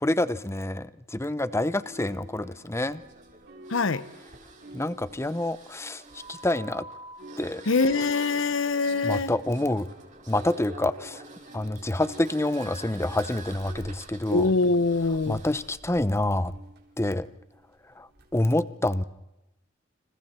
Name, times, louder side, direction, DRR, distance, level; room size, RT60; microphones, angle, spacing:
voice 1, 0.0-3.0 4.7-6.9 7.4-7.6 9.0-9.9 10.3-11.2 11.5-14.5 15.3-16.5 17.0-17.3 18.0-19.0, left 1 dB, 15° left, 0.8 m, -27 dB
sound 1, 1.4-6.8 7.0-18.5, equal, 55° right, 4.2 m, -49 dB
sound 2, 2.3-15.8, right 3 dB, 40° right, 4.7 m, -47 dB
voice 2, 3.7-4.1 7.7-9.3 14.3-15.4, left 3 dB, 80° left, 0.9 m, -24 dB
29.5 x 27.0 x 4.4 m
head